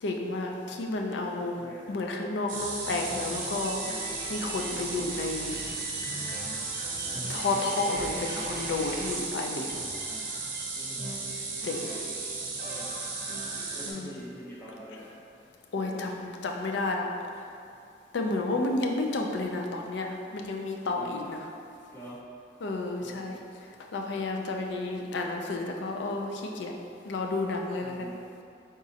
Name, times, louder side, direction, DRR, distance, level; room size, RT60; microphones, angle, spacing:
voice 1, 0.0-5.6 7.3-9.8 11.6-11.9 13.8-14.1 15.7-17.1 18.1-21.5 22.6-23.4 23.9-26.7 27.1-27.9, left 2 dB, 75° left, 2 dB, 0.4 m, -31 dB
voice 2, 1.5-1.9 4.8-5.2 7.0-7.4 10.7-11.0 12.6-12.9 13.7-15.1 15.7-16.1 18.5-18.8 20.9-21.3 21.9-22.2 23.0-23.4 27.8-28.3, equal, 15° left, -8 dB, 0.6 m, -46 dB
sound 1, 2.5-13.9, right 3 dB, 50° right, 0.7 m, -34 dB
4.1 x 3.6 x 2.8 m, 2.5 s
head